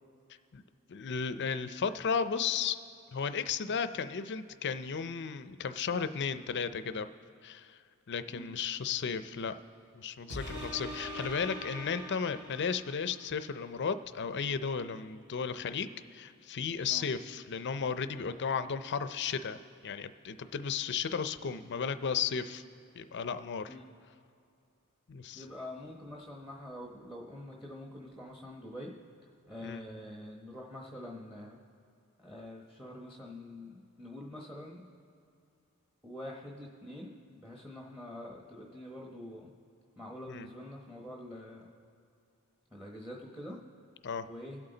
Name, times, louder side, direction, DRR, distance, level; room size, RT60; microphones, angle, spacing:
voice 1, 0.9-2.8 3.1-7.1 7.4-7.8 8.1-9.5 9.9-22.6 22.9-23.7 25.1-25.4 29.6-29.8 40.3-40.5 44.0-44.3, left 6 dB, 50° left, 12 dB, 0.5 m, -34 dB
sound 1, 10.3-13.2 13.7-13.8, equal, 85° right, 2.8 m, -42 dB
voice 2, 25.3-28.9 29.2-31.6 32.2-34.8 36.0-39.5 40.0-41.7 42.7-43.6 44.2-44.6, left 1 dB, 5° right, -1 dB, 0.9 m, -45 dB
23.5 x 8.3 x 3.9 m, 2.6 s
head